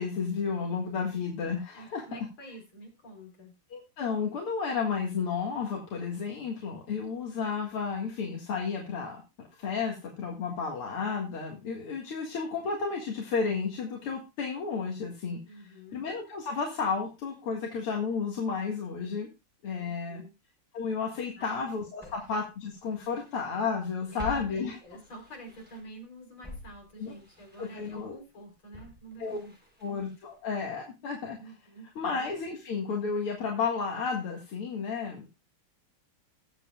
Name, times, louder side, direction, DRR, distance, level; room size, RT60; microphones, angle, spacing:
voice 1, 0.0-2.0 3.7-9.2 9.6-19.3 19.6-20.2 20.7-24.8 27.0-27.1 27.6-28.2 29.2-29.4 29.8-31.4 32.0-35.3, left 5 dB, 90° left, 0 dB, 2.7 m, -32 dB
voice 2, 1.7-3.5 15.5-16.1 19.8-20.3 21.4-21.6 22.0-22.2 23.1-23.2 24.1-29.5 31.4-31.9, right 1 dB, 70° left, 1 dB, 5.1 m, -48 dB
Walk footsteps, 21.3-21.4 22.0-23.5 23.8-26.0 26.4-30.5 30.7-30.8, left 3 dB, 5° right, 5.0 m, -48 dB
20.0 x 7.6 x 2.3 m, 0.26 s
omnidirectional pair, 2.4 m